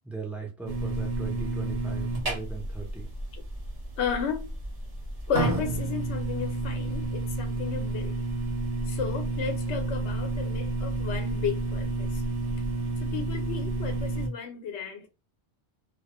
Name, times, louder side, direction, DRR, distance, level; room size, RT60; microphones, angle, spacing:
voice 1, 0.0-3.1, right 4 dB, ahead, 0.4 m, -38 dB
sound 1, 0.7-14.3, right 2 dB, 35° right, 0.9 m, -30 dB
voice 2, 4.0-4.5 5.3-8.2 8.9-12.2 13.0-15.1, left 7 dB, 80° left, 0.8 m, -33 dB
2.1 x 2.0 x 2.9 m
omnidirectional pair, 1.1 m